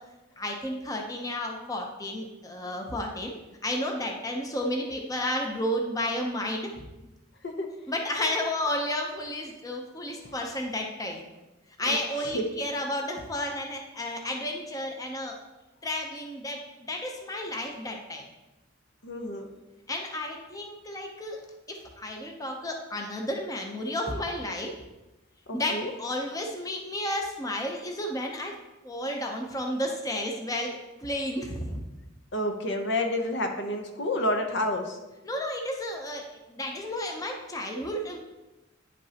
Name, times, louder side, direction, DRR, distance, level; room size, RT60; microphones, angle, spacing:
voice 1, 0.4-3.3 3.6-6.8 7.9-11.2 11.8-15.4 15.8-18.3 19.9-21.4 21.7-24.8 25.5-28.6 28.8-31.8 35.2-38.2, left 1 dB, 20° left, 1 dB, 0.7 m, -32 dB
voice 2, 11.9-12.4 19.0-19.5 25.5-25.9 32.3-35.0, left 1 dB, 60° left, 4 dB, 0.8 m, -30 dB
9.3 x 5.3 x 2.9 m, 1.0 s
head